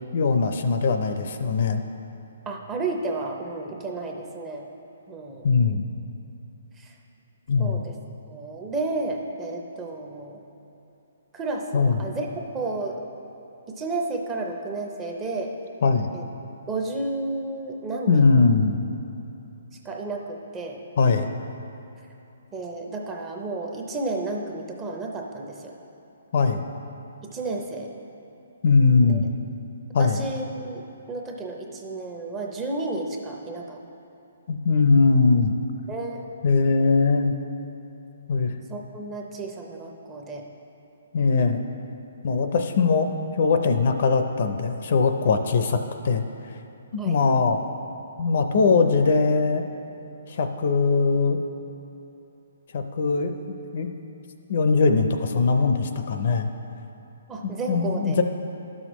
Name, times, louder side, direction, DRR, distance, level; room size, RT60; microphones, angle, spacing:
voice 1, 0.1-1.8 5.4-5.9 7.5-7.8 11.7-12.0 15.8-16.1 18.1-18.8 21.0-21.3 26.3-26.6 28.6-29.3 29.9-30.2 34.5-35.5 36.4-37.3 38.3-38.5 41.1-41.6 42.2-45.8 46.0-46.2 47.0-47.6 48.2-49.6 50.3-51.4 52.7-53.3 53.7-53.9 54.5-56.5 57.7-58.2, left 4 dB, 50° left, 7 dB, 0.5 m, -21 dB
voice 2, 2.5-4.7 5.1-5.5 6.8-6.9 7.6-7.9 8.3-10.4 11.3-12.3 12.5-13.0 13.7-15.5 16.1-16.2 16.7-18.3 19.7-20.8 22.5-25.7 27.2-27.9 29.0-29.2 30.0-33.8 35.9-36.3 38.7-40.5 41.3-41.6 47.0-47.2 57.3-58.2, right 2 dB, 15° right, 1 dB, 0.5 m, -32 dB
12.0 x 6.3 x 3.0 m, 2.9 s
hypercardioid pair, 165°, 0 cm